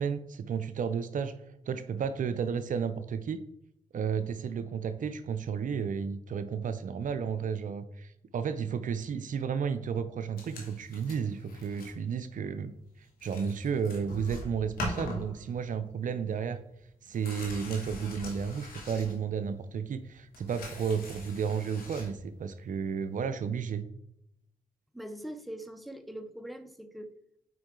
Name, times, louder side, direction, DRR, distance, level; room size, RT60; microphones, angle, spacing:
voice 1, 0.0-1.4 1.7-3.4 3.9-12.7 13.2-16.6 17.0-23.9, right 6 dB, 65° right, 11 dB, 0.5 m, -32 dB
sound 1, 10.4-12.0 12.3-12.5 12.9-13.0 13.2-15.8 16.1-16.2 16.5-19.6 20.0-22.1 23.1-23.2, left 2 dB, 90° left, 1.6 m, -42 dB
voice 2, 24.9-27.1, right 1 dB, ahead, 9 dB, 0.7 m, -42 dB
5.9 x 4.6 x 3.7 m, 0.76 s
supercardioid pair, 50°, 15 cm